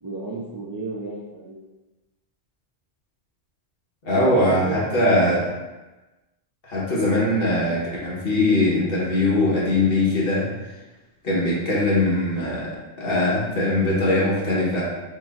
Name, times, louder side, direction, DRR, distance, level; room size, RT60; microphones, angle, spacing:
voice 1, 0.0-1.6 4.2-4.9, right 2 dB, 35° right, -5 dB, 0.3 m, -33 dB
voice 2, 4.0-5.5 6.6-10.5 11.2-12.7 13.0-14.8, left 1 dB, 60° left, -6 dB, 1.4 m, -21 dB
6.1 x 2.7 x 2.5 m, 1.1 s
omnidirectional pair, 1.1 m